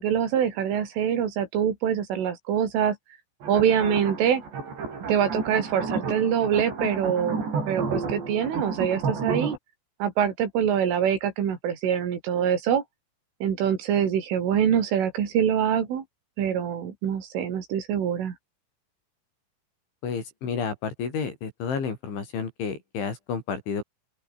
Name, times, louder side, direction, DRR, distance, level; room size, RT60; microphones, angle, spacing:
voice 1, 0.0-3.0 3.5-4.4 5.1-9.6 10.0-12.8 13.4-16.0 16.4-18.4, right 8 dB, 80° right, 5.9 m, -24 dB
sound 1, 3.4-9.6, right 4 dB, 60° right, 9.4 m, -31 dB
voice 2, 20.0-23.8, left 6 dB, 70° left, 8.2 m, -31 dB
open air
omnidirectional pair, 5.7 m